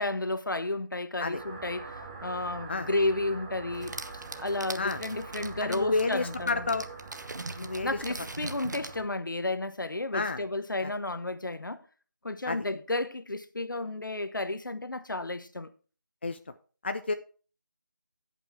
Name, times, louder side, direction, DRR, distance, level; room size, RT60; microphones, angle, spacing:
voice 1, 0.0-4.0 4.4-6.7 7.8-11.8 12.2-15.7, left 2 dB, 75° left, 1.1 m, -32 dB
sound 1, 1.3-9.0, right 4 dB, 20° right, 0.9 m, -44 dB
sound 2, 3.7-9.0, right 2 dB, 60° right, 0.9 m, -41 dB
voice 2, 5.6-6.9 7.6-7.9 10.1-10.4 12.5-12.6 16.2-16.4 16.8-17.1, left 3 dB, 35° left, 0.4 m, -30 dB
16.0 x 5.6 x 3.3 m
figure-of-eight pair, 165°, 11 cm